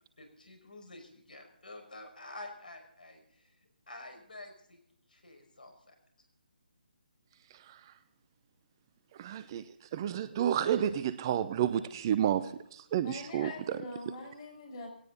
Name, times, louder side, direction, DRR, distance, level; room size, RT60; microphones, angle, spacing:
voice 1, 0.2-3.4 3.9-4.8 5.1-6.0, left 2 dB, 65° left, 5 dB, 5.6 m, -49 dB
voice 2, 9.2-9.6 9.9-13.8, right 10 dB, 25° right, 14 dB, 0.7 m, -30 dB
voice 3, 13.0-14.9, left 2 dB, 30° left, 1 dB, 6.8 m, -44 dB
19.5 x 17.5 x 4.0 m, 0.66 s
figure-of-eight pair, 145°, 5 cm